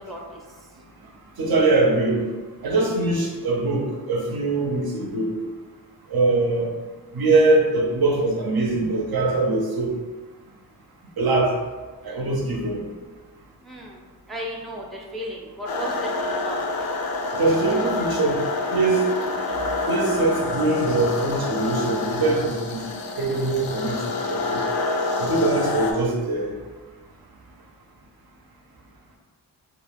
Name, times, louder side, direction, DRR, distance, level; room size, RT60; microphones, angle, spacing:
voice 1, 1.4-2.2 2.6-5.4 6.1-6.8 7.1-9.9 11.2-11.6 12.0-12.8 17.4-18.4 18.7-19.0 19.9-22.8 23.2-24.0 24.3-24.6 25.2-26.5, right 2 dB, 55° right, 0 dB, 0.6 m, -22 dB
voice 2, 13.6-14.0 14.3-16.6, equal, ahead, -3 dB, 0.5 m, -34 dB
sound 1, 15.7-25.9, left 3 dB, 55° left, 0.5 m, -27 dB
2.3 x 2.3 x 3.4 m, 1.3 s
cardioid pair, 45°, 43 cm